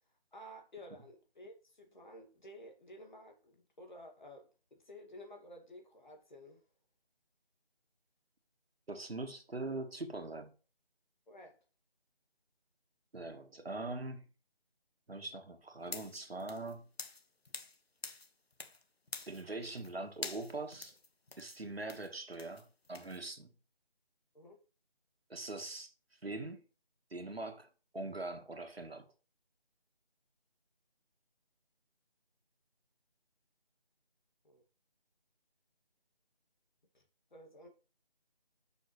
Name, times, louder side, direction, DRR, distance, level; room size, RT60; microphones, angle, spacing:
voice 1, 0.3-6.6 11.3-11.6 24.3-24.6 34.4-34.6 36.9-37.0 37.3-37.7, equal, 50° left, 2.5 m, -53 dB
voice 2, 8.9-10.5 13.1-14.2 15.1-16.9 19.3-21.0 21.4-23.5 25.3-25.9 26.2-26.6 27.1-27.7 27.9-29.1, right 2 dB, 80° right, 1.9 m, -42 dB
sound 1, 15.8-17.8 18.0-18.8 19.1-19.9 20.2-23.2, left 3 dB, 85° left, 1.6 m, -46 dB
9.7 x 6.3 x 3.3 m
figure-of-eight pair, 165°, 30 cm